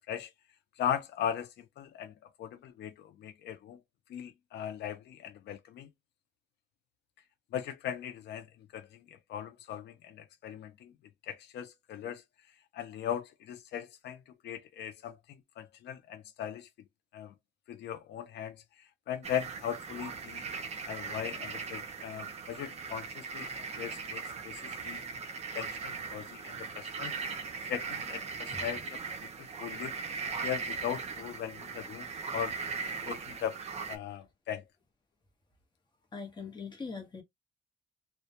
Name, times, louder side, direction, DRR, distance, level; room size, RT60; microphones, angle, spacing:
voice 1, 0.8-2.1 2.4-3.8 4.1-5.9 7.5-8.5 8.7-10.9 11.3-12.2 12.7-15.2 15.6-16.7 17.1-17.3 17.7-18.6 19.1-20.4 20.9-24.6 24.9-25.0 25.5-27.1 27.7-29.0 29.4-30.0 30.4-32.6 33.0-33.6 33.9-34.6, left 9 dB, 65° left, 0.4 m, -38 dB
sound 1, 19.2-34.0, right 5 dB, 35° right, 0.5 m, -39 dB
voice 2, 36.1-37.2, left 4 dB, 25° left, 0.8 m, -41 dB
2.1 x 2.1 x 2.7 m
cardioid pair, 145°, 19 cm